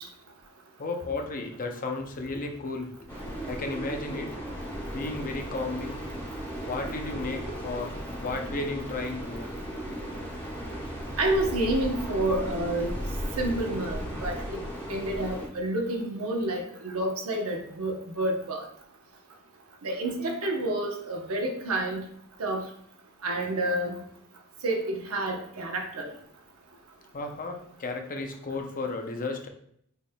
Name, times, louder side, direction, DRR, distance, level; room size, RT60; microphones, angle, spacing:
voice 1, 0.8-3.1 3.5-4.4 4.9-6.0 6.7-9.5 27.1-29.5, left 3 dB, 40° left, 5 dB, 0.5 m, -34 dB
sound 1, 3.1-15.5, equal, 10° left, 1.7 m, -36 dB
voice 2, 11.2-13.0 13.4-14.6 14.9-18.7 19.8-22.0 22.4-22.7 23.2-24.0 24.6-26.1, right 1 dB, 75° right, 2 dB, 0.9 m, -29 dB
6.0 x 3.5 x 2.2 m, 0.68 s
head